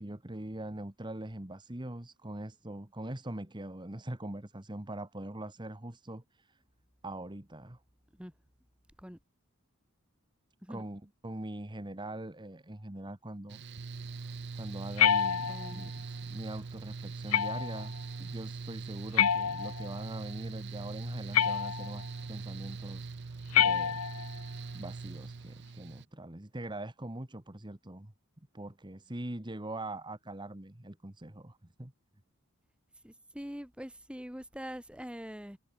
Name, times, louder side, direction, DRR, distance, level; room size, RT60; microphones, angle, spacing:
voice 1, 0.0-6.6 7.0-7.8 10.7-13.6 14.5-23.1 23.6-24.0 24.7-28.1 28.5-31.9, right 1 dB, 20° right, 1.5 m, -42 dB
Mechanical fan, 13.5-26.0, right 4 dB, 50° right, 0.6 m, -42 dB
sound 1, 15.0-15.9 17.3-17.9 19.2-20.0 21.3-22.1 23.5-24.4, left 8 dB, 85° left, 1.0 m, -27 dB
voice 2, 15.5-15.9 33.0-35.6, equal, 5° right, 3.6 m, -43 dB
head